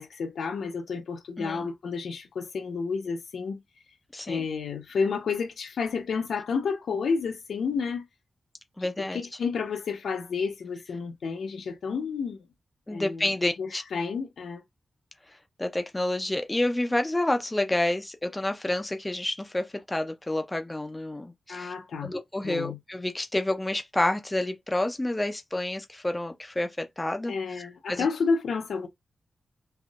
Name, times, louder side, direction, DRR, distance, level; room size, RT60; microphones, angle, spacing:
voice 1, 0.0-3.6 4.3-8.0 9.0-12.4 12.9-13.3 13.6-14.6 21.5-22.1 22.4-22.8 27.3-28.9, left 5 dB, 85° left, 0.8 m, -30 dB
voice 2, 1.4-1.7 4.1-4.4 8.8-9.2 12.9-13.8 15.6-21.7 22.0-28.1, left 1 dB, 10° left, 0.4 m, -29 dB
3.5 x 2.7 x 2.4 m
wide cardioid pair, 175°, 0 cm